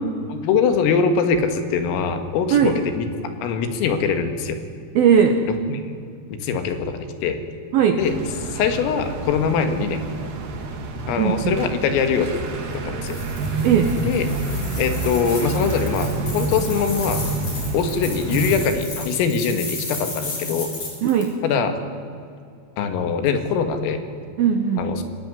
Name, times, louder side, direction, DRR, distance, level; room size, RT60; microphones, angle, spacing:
voice 1, 0.3-3.1 3.4-4.6 5.7-5.8 6.3-7.4 8.0-8.1 8.5-10.0 11.1-12.4 12.7-13.2 14.1-14.3 14.8-17.2 17.7-20.7 21.4-21.8 22.8-24.0 24.8-25.0, left 6 dB, 80° left, 7 dB, 4.5 m, -22 dB
voice 2, 4.9-5.4 7.7-8.0 11.2-11.6 13.6-14.0 21.0-21.3 24.4-24.9, right 8 dB, 70° right, 5 dB, 2.3 m, -18 dB
sound 1, 8.0-18.7, right 3 dB, 50° right, 3.2 m, -28 dB
sound 2, 13.1-21.3, left 3 dB, 40° left, 7.1 m, -34 dB
28.5 x 20.0 x 9.7 m, 2.4 s
omnidirectional pair, 6.0 m